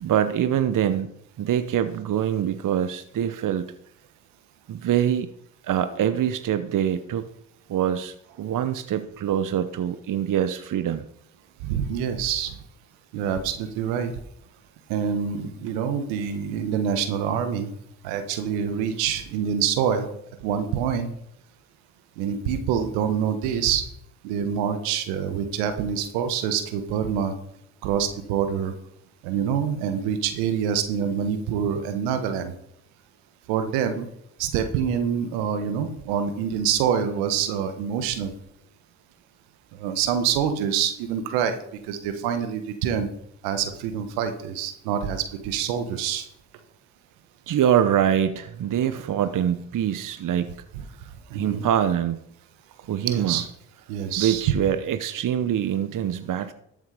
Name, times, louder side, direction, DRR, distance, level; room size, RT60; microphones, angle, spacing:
voice 1, 0.0-1.1 1.4-3.7 4.7-5.3 5.6-7.3 7.7-11.1 31.0-31.1 47.5-50.5 51.3-52.2 52.9-53.4 54.2-56.5, right 10 dB, 60° right, 12 dB, 1.0 m, -24 dB
voice 2, 11.6-12.5 13.1-14.1 14.9-17.7 18.0-20.1 20.4-21.1 22.2-23.8 24.2-27.3 27.8-28.7 29.2-32.5 33.5-34.1 34.4-38.3 39.8-41.6 41.9-43.1 43.4-46.3 51.3-51.6 53.0-53.5 53.9-54.5, right 8 dB, 90° right, 8 dB, 1.4 m, -26 dB
13.0 x 7.6 x 5.0 m, 0.74 s
hypercardioid pair, 50°, 36 cm